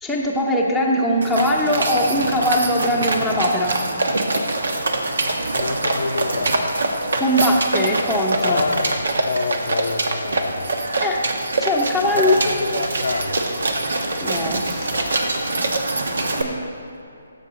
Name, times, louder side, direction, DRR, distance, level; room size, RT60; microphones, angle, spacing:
voice 1, 0.0-3.9 7.2-8.6 11.0-11.2 11.6-12.4 14.2-14.9 16.4-16.7, left 1 dB, ahead, -6 dB, 0.9 m, -21 dB
sound 1, 1.2-16.4, right 2 dB, 65° right, 1.2 m, -24 dB
voice 2, 5.5-6.6 8.4-10.8 12.1-13.4, left 3 dB, 65° left, 7 dB, 0.7 m, -27 dB
15.5 x 7.3 x 4.0 m, 2.7 s
figure-of-eight pair, 145°, 0 cm